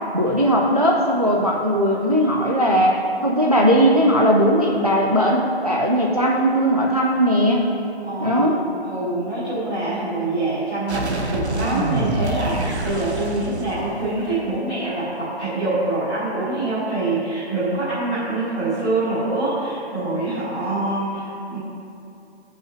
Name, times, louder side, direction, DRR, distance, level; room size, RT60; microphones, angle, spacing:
voice 1, 0.1-7.7 8.2-8.6, equal, 40° right, -1 dB, 0.4 m, -18 dB
voice 2, 8.0-21.6, right 2 dB, 5° left, -17 dB, 0.8 m, -25 dB
sound 1, 10.9-14.6, right 2 dB, 85° right, 1.0 m, -27 dB
12.0 x 5.4 x 3.1 m, 2.7 s
hypercardioid pair, 180°, 32 cm